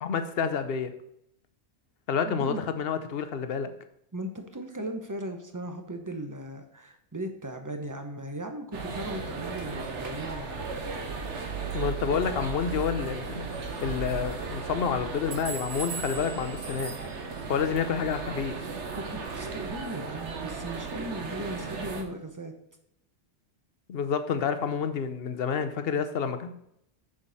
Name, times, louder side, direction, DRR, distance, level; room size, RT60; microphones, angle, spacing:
voice 1, 0.0-0.9 2.1-3.7 11.7-13.5 13.8-16.9 17.5-18.7 23.9-26.5, left 6 dB, 60° left, 9 dB, 0.9 m, -29 dB
voice 2, 2.2-2.6 4.1-10.7 19.0-22.5, right 1 dB, 20° right, 5 dB, 0.9 m, -37 dB
sound 1, 8.7-22.0, right 4 dB, 75° right, 1.4 m, -36 dB
7.1 x 6.6 x 4.1 m, 0.76 s
omnidirectional pair, 1.2 m